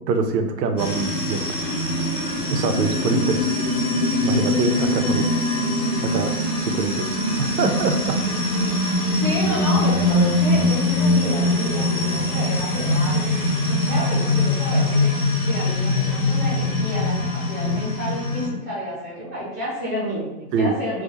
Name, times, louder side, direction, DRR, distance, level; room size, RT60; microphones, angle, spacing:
voice 1, 0.1-1.6 2.5-3.6 4.2-5.4 6.0-8.2 20.5-20.8, right 4 dB, 80° right, 6 dB, 0.6 m, -24 dB
sound 1, 0.8-18.5, left 2 dB, 90° left, 1.0 m, -22 dB
voice 2, 9.2-15.1 15.4-21.0, equal, 5° right, -9 dB, 0.6 m, -30 dB
2.3 x 2.1 x 2.9 m, 1.0 s
hypercardioid pair, 160°, 48 cm